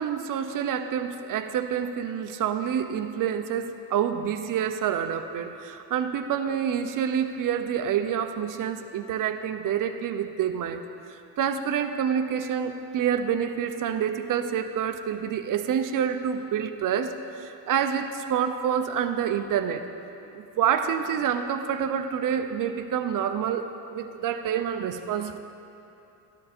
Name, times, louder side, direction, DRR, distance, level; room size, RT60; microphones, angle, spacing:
voice 1, 0.0-10.8 11.1-19.8 20.3-25.4, right 8 dB, 40° right, 8 dB, 0.8 m, -27 dB
12.5 x 12.5 x 4.4 m, 2.8 s
cardioid pair, 120°, 47 cm